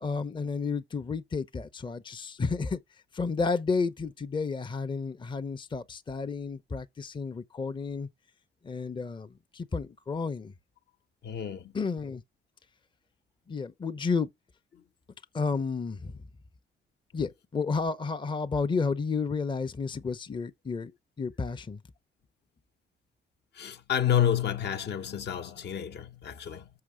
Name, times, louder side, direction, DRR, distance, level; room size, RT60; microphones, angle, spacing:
voice 1, 0.0-2.8 3.1-8.1 8.6-10.5 11.7-12.2 13.5-14.3 15.3-16.2 17.1-20.9 21.2-21.8, left 4 dB, 25° left, 0.7 m, -31 dB
voice 2, 11.2-11.7 23.6-26.7, left 9 dB, 60° left, 1.0 m, -29 dB
6.6 x 5.6 x 4.9 m
cardioid pair, 90°, 20 cm